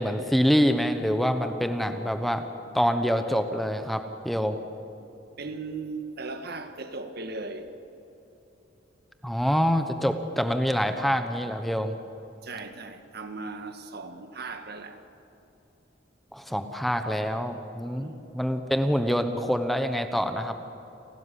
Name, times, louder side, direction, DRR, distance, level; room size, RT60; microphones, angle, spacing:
voice 1, 0.0-2.4 2.7-4.6 9.2-11.9 16.3-20.6, equal, ahead, 0.9 m, -26 dB
voice 2, 5.4-7.7 12.4-15.0 18.0-18.4, right 3 dB, 60° right, 1.6 m, -38 dB
29.0 x 13.0 x 9.9 m
head